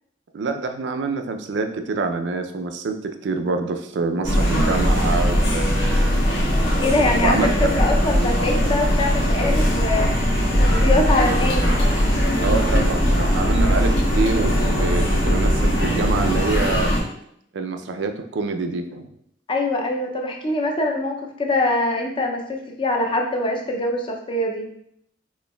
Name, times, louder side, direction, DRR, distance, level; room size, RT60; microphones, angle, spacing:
voice 1, 0.3-6.2 7.2-7.7 12.4-13.9 14.2-16.9 17.5-19.1, right 4 dB, 75° right, 7 dB, 0.4 m, -26 dB
sound 1, 4.2-17.0, equal, 90° left, 1.3 m, -19 dB
voice 2, 6.8-10.3 10.6-11.6 19.5-24.6, left 2 dB, 30° left, 1 dB, 0.4 m, -23 dB
4.3 x 3.0 x 2.2 m, 0.71 s
head